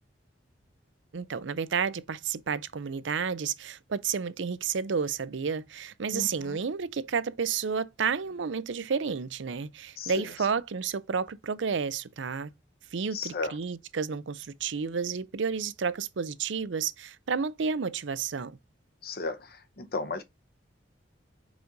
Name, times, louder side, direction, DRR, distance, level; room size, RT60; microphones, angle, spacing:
voice 1, 1.1-12.5 12.9-18.6, right 6 dB, 80° right, 0.5 m, -31 dB
voice 2, 6.1-6.6 10.0-10.2 13.1-13.5 19.0-20.2, left 3 dB, 55° left, 0.8 m, -34 dB
5.2 x 4.9 x 3.9 m
head